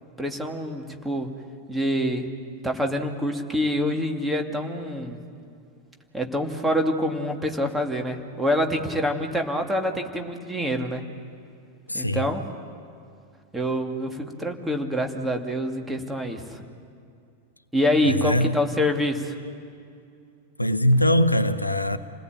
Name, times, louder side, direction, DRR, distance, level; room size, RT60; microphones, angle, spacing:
voice 1, 0.2-1.3 1.7-2.3 2.6-5.2 6.1-11.0 11.9-12.5 13.5-16.6 17.7-19.3, equal, 5° right, 2.5 m, -26 dB
voice 2, 11.9-12.2 18.0-18.5 20.6-22.0, left 1 dB, 85° left, 0.8 m, -21 dB
29.5 x 19.0 x 9.1 m
figure-of-eight pair, 90°, 0 cm